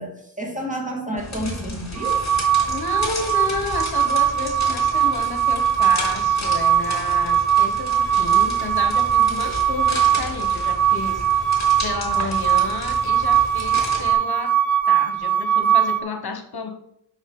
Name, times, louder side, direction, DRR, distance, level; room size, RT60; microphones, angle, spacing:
voice 1, 0.0-2.2, right 1 dB, 15° right, -1 dB, 2.1 m, -30 dB
sound 1, 1.2-14.1, left 2 dB, 35° left, 3.4 m, -33 dB
sound 2, 2.0-16.0, right 9 dB, 40° right, 0.6 m, -20 dB
voice 2, 2.6-11.4 11.8-14.6 14.9-16.7, left 4 dB, 55° left, 6 dB, 1.2 m, -31 dB
6.4 x 6.3 x 5.3 m, 0.73 s
wide cardioid pair, 105°, 44 cm